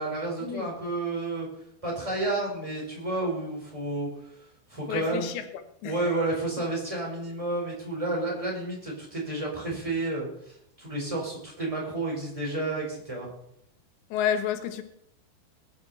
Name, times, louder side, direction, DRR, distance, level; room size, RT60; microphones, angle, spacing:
voice 1, 0.0-1.5 1.8-4.1 4.7-5.3 5.8-13.3, right 2 dB, 10° right, -2 dB, 4.2 m, -31 dB
voice 2, 4.9-5.4 5.8-6.3 14.1-14.8, left 9 dB, 85° left, 8 dB, 3.4 m, -30 dB
21.0 x 9.8 x 4.2 m, 0.72 s
omnidirectional pair, 4.9 m